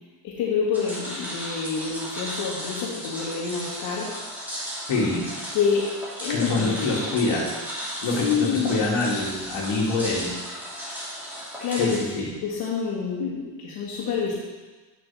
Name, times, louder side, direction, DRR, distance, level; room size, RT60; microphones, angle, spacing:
voice 1, 0.2-4.1 5.5-6.7 8.0-8.8 11.6-12.0 12.4-14.3, left 6 dB, 80° left, -8 dB, 1.9 m, -27 dB
sound 1, 0.7-12.0, equal, 5° right, 2.7 m, -35 dB
voice 2, 4.9-5.3 6.3-7.5 8.0-10.3 11.8-11.9 12.1-12.2, left 3 dB, 60° left, -4 dB, 2.4 m, -25 dB
9.2 x 6.0 x 3.5 m, 1.3 s
cardioid pair, 130°, 48 cm